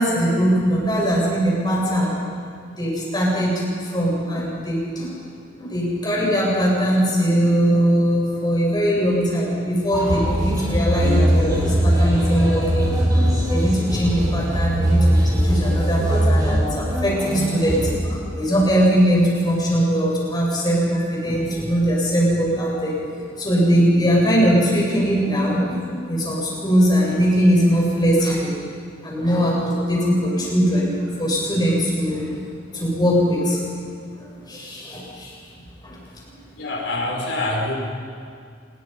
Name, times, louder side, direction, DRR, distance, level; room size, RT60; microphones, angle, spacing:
voice 1, 0.0-2.1 2.7-5.1 5.6-28.6 29.0-32.3 32.7-33.6 34.1-35.4 35.8-36.0, equal, 20° left, -4 dB, 7.5 m, -21 dB
sound 1, 9.9-18.0, equal, 20° right, 5.7 m, -20 dB
voice 2, 36.6-37.7, left 2 dB, 65° left, -1 dB, 5.6 m, -25 dB
27.0 x 22.0 x 5.5 m, 2.2 s
head